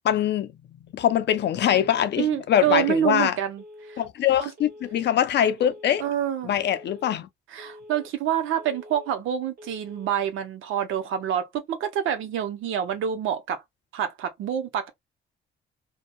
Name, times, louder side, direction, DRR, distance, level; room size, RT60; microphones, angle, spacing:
voice 1, 0.0-0.5 0.9-3.4 4.0-6.0 6.4-7.3, left 10 dB, 60° left, 0.5 m, -23 dB
voice 2, 2.2-4.0 4.4-4.5 6.0-6.5 7.5-13.6 13.9-14.9, right 10 dB, 80° right, 0.7 m, -27 dB
Telephone, 2.6-3.1 3.6-4.1 4.6-5.1 5.6-6.1 6.6-7.1 7.6-8.1 8.6-9.1 9.6-10.1, left 1 dB, 45° right, 1.0 m, -46 dB
2.7 x 2.2 x 2.2 m
cardioid pair, 90°, 20 cm